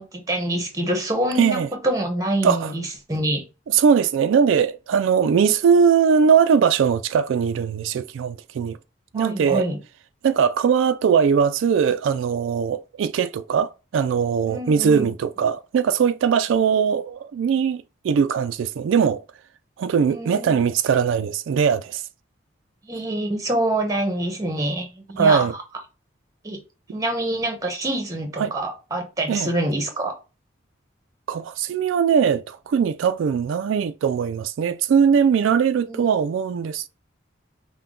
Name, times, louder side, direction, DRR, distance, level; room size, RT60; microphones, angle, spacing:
voice 1, 0.0-3.4 9.1-9.8 14.5-15.1 20.0-20.6 22.8-25.6 26.4-26.6 26.9-30.1 35.9-36.0, right 1 dB, 15° right, 0.9 m, -26 dB
voice 2, 1.4-1.7 2.4-2.7 3.7-8.8 9.1-9.6 10.2-19.2 19.8-22.0 25.2-25.5 28.4-28.5 29.3-29.5 31.3-36.9, right 6 dB, 80° right, 0.3 m, -20 dB
5.7 x 2.2 x 3.7 m
head